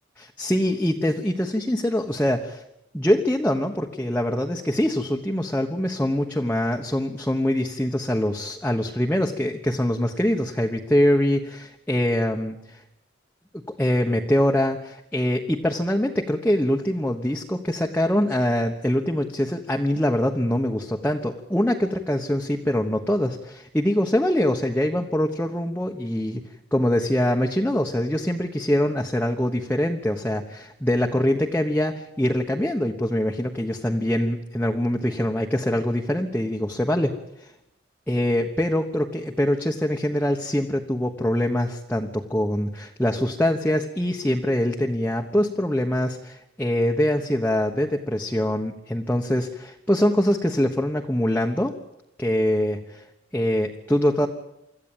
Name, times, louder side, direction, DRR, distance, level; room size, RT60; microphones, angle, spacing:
voice 1, 0.2-2.6 2.9-12.8 13.7-26.4 26.7-37.1 37.4-37.5 38.1-51.8 52.2-53.0 53.3-54.3, left 1 dB, 10° left, 1 dB, 1.2 m, -24 dB
25.5 x 14.0 x 9.0 m, 0.85 s
head